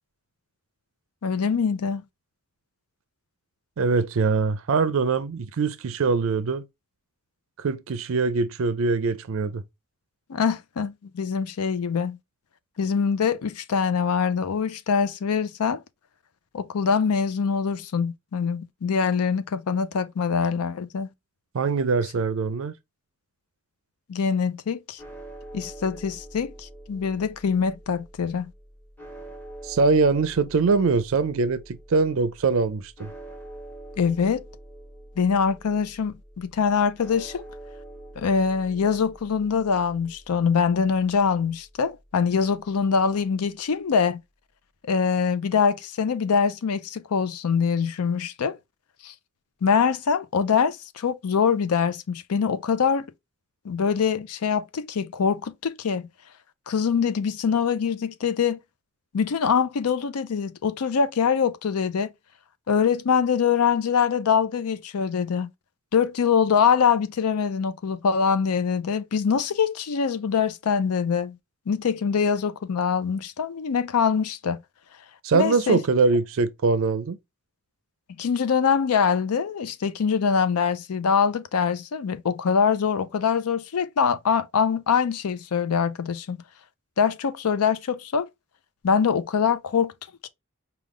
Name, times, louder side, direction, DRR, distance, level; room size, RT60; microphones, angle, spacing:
voice 1, 1.2-2.0 10.3-12.2 12.8-15.8 16.5-21.1 24.1-25.0 25.5-28.5 34.0-34.4 35.2-37.4 38.2-44.2 44.9-48.6 49.0-49.1 49.6-53.0 53.6-56.1 56.7-58.6 59.1-62.1 62.7-65.5 65.9-71.4 71.7-74.6 75.3-75.8 78.2-86.4 87.0-88.3 88.8-89.9 90.2-90.3, left 6 dB, 85° left, 0.5 m, -24 dB
voice 2, 3.8-6.6 7.6-9.6 21.5-22.7 29.6-33.1 75.2-77.2, right 4 dB, 60° right, 0.4 m, -23 dB
sound 1, 25.0-43.2, right 1 dB, 10° left, 0.9 m, -46 dB
4.8 x 2.3 x 3.5 m
head